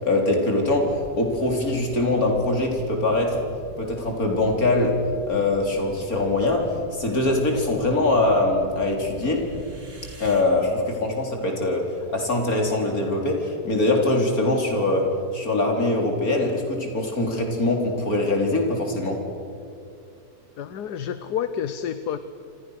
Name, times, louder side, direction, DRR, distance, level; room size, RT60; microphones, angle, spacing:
voice 1, 0.0-3.4 3.8-5.0 5.3-9.5 10.2-19.2, left 2 dB, 60° left, 2 dB, 4.6 m, -23 dB
sound 1, 0.7-10.4, right 1 dB, 50° right, 3.5 m, -43 dB
voice 2, 20.6-22.2, left 8 dB, 80° left, 11 dB, 1.5 m, -29 dB
28.0 x 27.0 x 6.6 m, 2.5 s
omnidirectional pair, 1.7 m